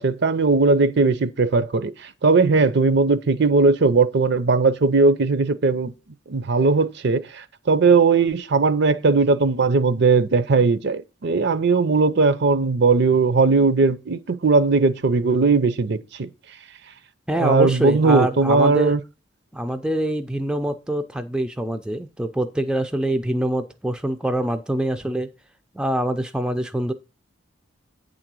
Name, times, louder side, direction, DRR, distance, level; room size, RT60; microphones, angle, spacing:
voice 1, 0.0-5.9 6.3-16.3 17.4-19.0, right 4 dB, 55° right, 0.6 m, -18 dB
voice 2, 17.3-19.0 19.5-25.3 25.7-26.9, right 1 dB, 5° right, 0.4 m, -25 dB
8.7 x 3.8 x 6.1 m
head